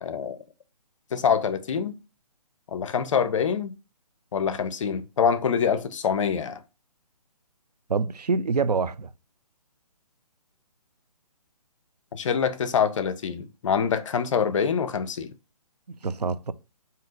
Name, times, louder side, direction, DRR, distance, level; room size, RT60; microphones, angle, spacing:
voice 1, 0.0-0.4 1.1-2.0 2.7-3.7 4.3-6.6 12.1-15.3, left 7 dB, 55° left, 0.5 m, -25 dB
voice 2, 7.9-9.1 16.0-16.5, right 4 dB, 90° right, 0.4 m, -26 dB
5.2 x 2.7 x 2.5 m
figure-of-eight pair, 140°, 20 cm